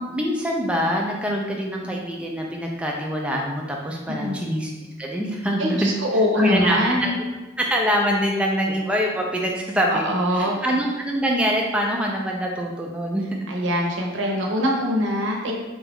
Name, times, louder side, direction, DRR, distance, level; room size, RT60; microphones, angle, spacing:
voice 1, 0.0-4.7 5.0-6.0 6.4-7.1 7.6-13.2, equal, 5° right, -1 dB, 0.4 m, -24 dB
voice 2, 5.6-7.1 9.9-10.5 13.5-15.5, equal, 65° right, 0 dB, 0.7 m, -23 dB
4.2 x 2.4 x 3.4 m, 1.2 s
head